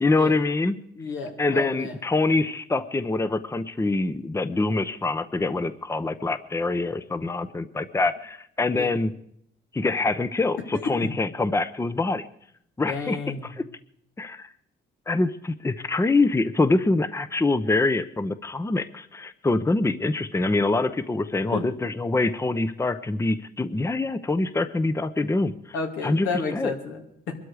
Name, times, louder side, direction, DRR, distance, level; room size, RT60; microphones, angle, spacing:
voice 1, 0.0-0.8 1.4-9.1 9.7-12.2 12.8-13.2 13.4-13.6 14.2-14.5 15.1-25.8 26.0-26.7, left 3 dB, 15° left, 13 dB, 0.7 m, -25 dB
voice 2, 1.0-2.0 8.7-8.9 11.0-11.1 12.9-13.5 21.5-21.6 25.7-27.3, left 4 dB, 85° left, 3 dB, 2.8 m, -31 dB
22.5 x 13.0 x 4.9 m, 0.70 s
cardioid pair, 90°, 20 cm